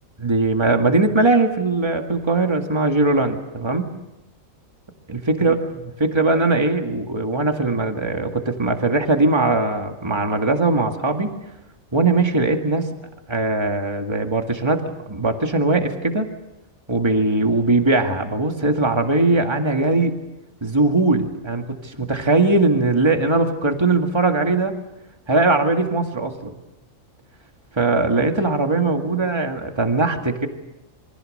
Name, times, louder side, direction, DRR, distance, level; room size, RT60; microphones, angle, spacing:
voice 1, 0.2-3.9 5.1-11.3 11.9-12.9 13.3-16.3 16.9-20.1 20.6-24.8 25.3-26.5 27.8-30.5, right 3 dB, 20° right, 4 dB, 2.1 m, -20 dB
28.0 x 24.0 x 6.6 m, 0.93 s
omnidirectional pair, 1.4 m